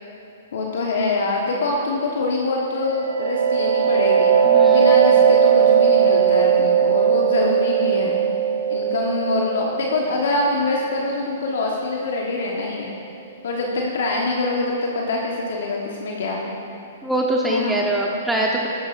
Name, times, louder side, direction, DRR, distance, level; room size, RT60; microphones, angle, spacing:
voice 1, 0.5-4.3 4.7-8.2 8.7-12.9 13.4-16.6 17.5-17.8, left 2 dB, 65° left, -1 dB, 1.3 m, -24 dB
sound 1, 2.7-12.2, right 8 dB, 80° right, 1.6 m, -19 dB
voice 2, 4.4-4.8 17.0-18.7, right 1 dB, 5° right, -2 dB, 0.9 m, -23 dB
14.0 x 11.5 x 2.6 m, 2.8 s
hypercardioid pair, 120°, 0 cm